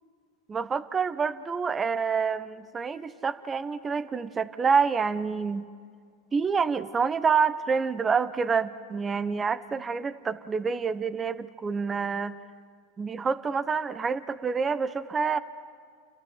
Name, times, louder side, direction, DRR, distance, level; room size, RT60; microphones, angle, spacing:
voice 1, 0.5-5.6 6.3-12.3 13.0-15.4, right 5 dB, 20° right, 13 dB, 1.0 m, -27 dB
29.5 x 13.5 x 9.4 m, 2.1 s
hypercardioid pair, 90°, 0 cm